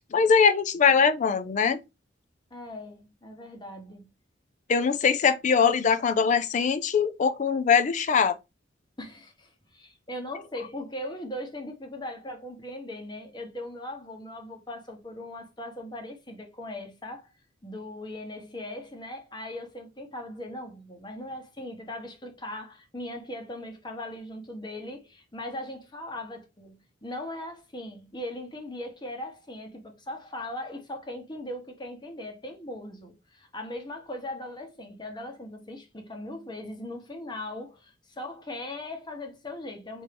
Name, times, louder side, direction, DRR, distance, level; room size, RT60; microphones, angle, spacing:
voice 1, 0.1-1.8 4.7-8.4, left 6 dB, 40° left, 0.4 m, -22 dB
voice 2, 2.5-4.1 9.0-17.3 17.6-40.0, left 1 dB, 25° left, 1.0 m, -39 dB
4.5 x 2.7 x 3.3 m
head